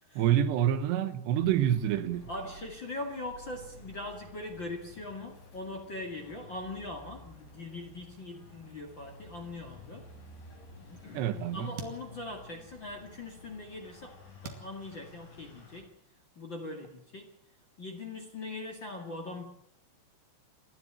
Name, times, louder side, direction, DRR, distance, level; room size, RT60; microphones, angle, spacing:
voice 1, 0.2-2.3 11.1-11.7, right 10 dB, 75° right, 3.1 m, -27 dB
sound 1, 1.4-15.8, left 1 dB, 80° left, 9.4 m, -52 dB
voice 2, 2.3-10.1 10.8-15.9 16.4-17.3 17.8-19.5, left 2 dB, 35° left, 2.1 m, -41 dB
sound 2, 11.8-13.2 13.7-15.8, right 4 dB, 55° right, 3.8 m, -48 dB
28.5 x 12.0 x 8.9 m
omnidirectional pair, 5.1 m